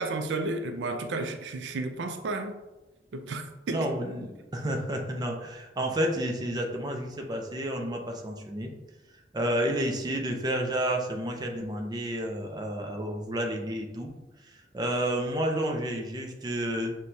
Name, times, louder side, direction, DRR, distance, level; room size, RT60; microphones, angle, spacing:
voice 1, 0.0-2.6 3.1-3.8, right 2 dB, 90° right, 6 dB, 0.4 m, -32 dB
voice 2, 3.7-8.7 9.3-14.1 14.4-17.0, right 1 dB, 25° right, 2 dB, 0.5 m, -30 dB
6.0 x 2.2 x 2.6 m, 1.1 s
head